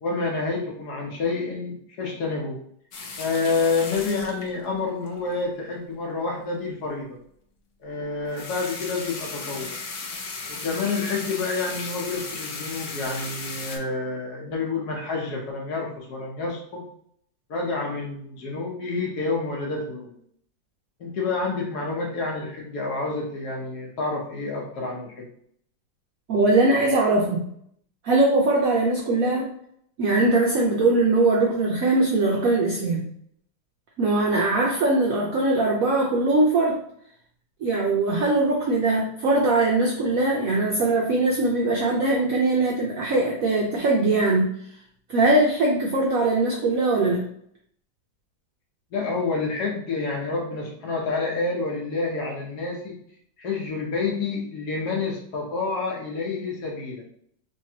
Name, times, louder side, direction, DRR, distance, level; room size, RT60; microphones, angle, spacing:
voice 1, 0.0-2.6 3.2-7.2 7.8-9.8 10.5-16.8 17.5-20.2 21.0-25.3 48.9-53.0 53.4-57.0, left 3 dB, 65° left, -1 dB, 1.2 m, -28 dB
sound 1, 2.9-5.4 8.2-13.8, left 4 dB, 80° left, 0.6 m, -36 dB
voice 2, 26.3-27.4 28.0-29.5 30.0-33.1 34.0-36.8 37.6-44.5 45.1-47.2, right 2 dB, 75° right, -2 dB, 0.8 m, -21 dB
3.3 x 3.1 x 2.7 m, 0.67 s
omnidirectional pair, 2.1 m